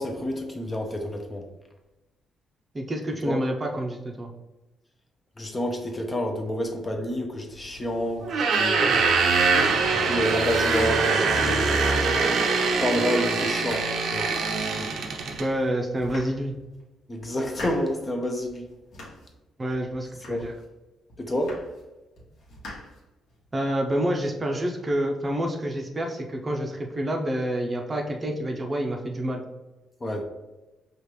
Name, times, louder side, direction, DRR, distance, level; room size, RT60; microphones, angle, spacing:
voice 1, 0.0-1.4 3.2-3.4 5.4-9.0 9.9-11.8 12.8-14.3 17.1-18.7 20.3-20.5 21.2-21.6 30.0-30.2, equal, 25° left, 4 dB, 0.6 m, -29 dB
voice 2, 2.7-4.3 15.4-16.6 19.6-20.5 23.5-29.4, right 1 dB, 25° right, 2 dB, 0.6 m, -28 dB
sound 1, 8.2-15.5, right 4 dB, 70° right, 0.6 m, -23 dB
sound 2, 13.5-14.8 15.4-15.5 15.9-16.8 17.2-18.0 18.5-19.4 19.7-20.7 21.1-21.9 22.2-23.5, left 1 dB, 70° left, 1.2 m, -43 dB
5.1 x 2.4 x 3.1 m, 1.1 s
cardioid pair, 90°, 0 cm